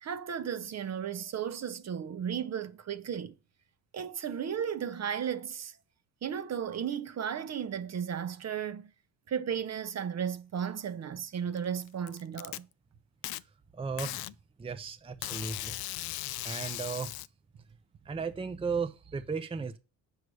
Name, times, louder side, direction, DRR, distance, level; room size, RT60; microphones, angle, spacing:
voice 1, 0.0-3.3 3.9-5.8 6.2-8.9 9.3-12.7, right 8 dB, 45° right, 0.8 m, -34 dB
Packing tape duct tape, 11.6-12.6 13.2-13.4 14.0-14.3 15.2-17.3, left 16 dB, 70° left, 0.5 m, -37 dB
voice 2, 13.7-14.2 14.6-15.7 16.4-17.1 18.1-19.8, right 5 dB, 15° right, 0.6 m, -35 dB
8.1 x 6.4 x 4.8 m
cardioid pair, 95°, 38 cm